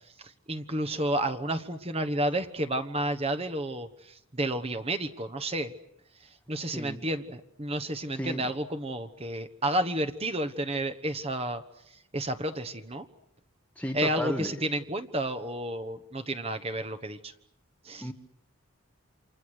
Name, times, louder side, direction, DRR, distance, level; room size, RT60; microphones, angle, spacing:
voice 1, 0.2-5.7 6.5-11.6 12.1-13.1 13.9-17.3 17.8-18.0, right 1 dB, 30° right, 9 dB, 1.2 m, -31 dB
voice 2, 6.7-7.0 8.1-8.4 13.8-14.7 18.0-18.1, left 1 dB, 5° left, 4 dB, 1.4 m, -34 dB
29.0 x 26.0 x 6.5 m, 0.79 s
head